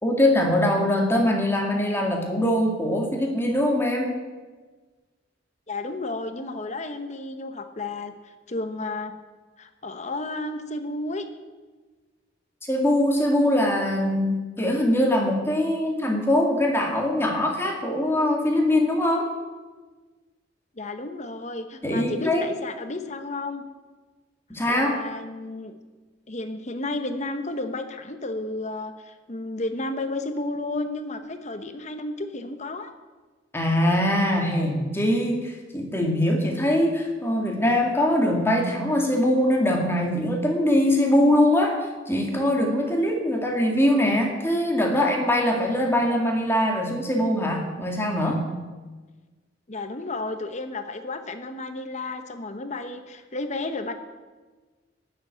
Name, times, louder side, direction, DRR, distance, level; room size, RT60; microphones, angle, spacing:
voice 1, 0.0-4.2 12.7-19.3 21.8-22.5 24.5-24.9 33.5-48.4, left 1 dB, 15° left, 1 dB, 2.2 m, -22 dB
voice 2, 5.7-8.1 8.5-9.1 9.6-11.2 20.8-23.6 24.7-25.7 26.3-32.9 49.7-53.9, left 2 dB, 35° left, 8 dB, 1.0 m, -32 dB
13.0 x 7.9 x 9.8 m, 1.3 s
head